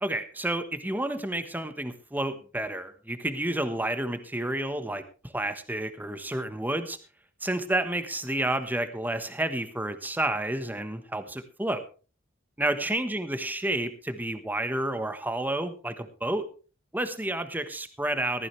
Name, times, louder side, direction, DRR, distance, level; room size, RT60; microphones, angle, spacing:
voice 1, 0.0-5.0 5.3-7.0 7.4-11.8 12.6-16.5 16.9-18.5, right 1 dB, 10° right, 10 dB, 1.2 m, -30 dB
15.0 x 14.5 x 3.3 m, 0.36 s
head